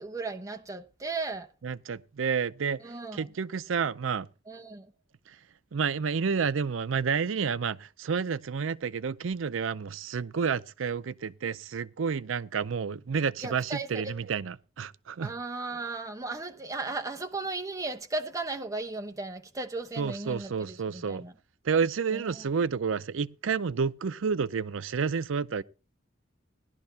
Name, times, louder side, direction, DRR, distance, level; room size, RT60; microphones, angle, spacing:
voice 1, 0.0-1.5 2.8-3.3 4.5-4.9 13.4-14.1 15.2-21.3 22.1-22.4, right 3 dB, 15° right, 1.0 m, -36 dB
voice 2, 1.6-2.8 3.1-4.3 5.3-5.4 5.7-15.3 20.0-21.2 21.6-25.6, right 6 dB, 85° right, 0.5 m, -30 dB
17.0 x 11.5 x 2.8 m
head